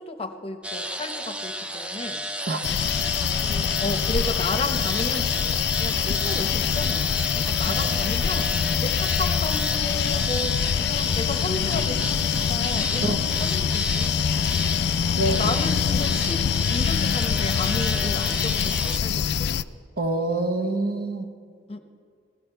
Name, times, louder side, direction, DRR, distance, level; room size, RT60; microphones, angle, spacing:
voice 1, 0.0-2.2 3.4-8.5 8.8-14.2 15.3-19.6 21.7-21.8, left 2 dB, 35° left, 7 dB, 0.8 m, -33 dB
sound 1, 0.6-19.0, equal, 5° right, 0.5 m, -33 dB
sound 2, 2.6-19.6, left 8 dB, 65° left, 0.3 m, -24 dB
voice 2, 13.0-13.5 15.2-15.6 20.0-21.3, right 2 dB, 55° right, 6 dB, 1.1 m, -26 dB
16.0 x 14.5 x 4.5 m, 2.1 s
head